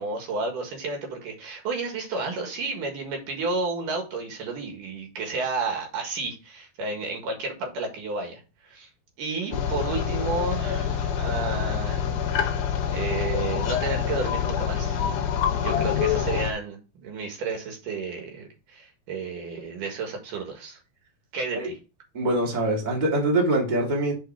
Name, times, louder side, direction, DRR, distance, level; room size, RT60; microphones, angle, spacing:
voice 1, 0.0-8.9 9.2-12.4 12.9-15.0 15.6-20.8 21.3-21.7, right 3 dB, 75° right, 3 dB, 3.2 m, -32 dB
sound 1, 9.5-16.5, left 8 dB, 75° left, 1.6 m, -26 dB
voice 2, 22.1-24.1, right 1 dB, 15° right, -2 dB, 1.8 m, -24 dB
6.5 x 4.5 x 4.5 m, 0.30 s
omnidirectional pair, 3.9 m